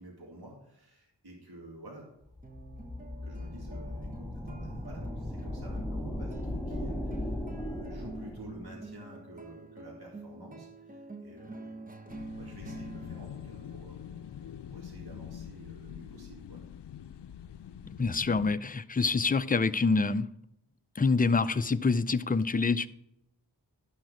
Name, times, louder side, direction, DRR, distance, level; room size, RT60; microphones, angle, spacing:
voice 1, 0.0-2.1 3.2-11.9 12.3-14.1 14.7-16.6, right 1 dB, 65° right, -1 dB, 2.1 m, -50 dB
sound 1, 2.3-8.8, left 1 dB, ahead, 1.4 m, -37 dB
sound 2, 2.4-15.2, right 2 dB, 20° right, 0.9 m, -47 dB
sound 3, 12.1-18.6, left 9 dB, 75° left, 0.5 m, -44 dB
voice 2, 18.0-20.3 21.0-22.9, left 4 dB, 20° left, 13 dB, 0.4 m, -26 dB
11.5 x 6.1 x 4.9 m, 0.81 s
wide cardioid pair, 60°, 42 cm